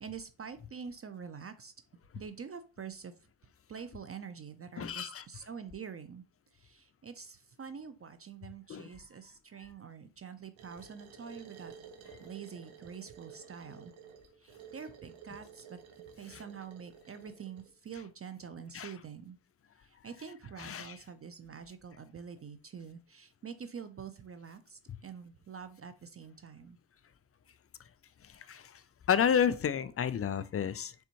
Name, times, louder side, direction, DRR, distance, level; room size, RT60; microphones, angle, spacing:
voice 1, 0.0-1.7 2.1-3.1 3.7-6.2 6.5-11.7 12.2-13.9 14.4-15.8 16.2-19.4 19.8-26.8, right 6 dB, 30° right, 0.5 m, -46 dB
voice 2, 4.8-5.3 8.7-8.9 16.3-16.4 18.7-18.9 20.6-21.0 28.2-28.8 29.1-30.9, left 8 dB, 30° left, 0.4 m, -31 dB
sound 1, 10.6-17.7, right 7 dB, 70° right, 1.0 m, -53 dB
4.1 x 3.5 x 2.9 m
supercardioid pair, 55°, 49 cm